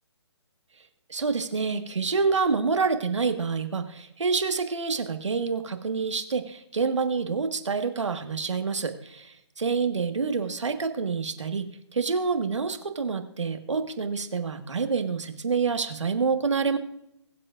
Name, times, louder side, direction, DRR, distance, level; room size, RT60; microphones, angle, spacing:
voice 1, 1.1-16.8, right 5 dB, 80° right, 6 dB, 1.6 m, -27 dB
21.5 x 7.7 x 2.5 m, 0.79 s
hypercardioid pair, 150°, 15 cm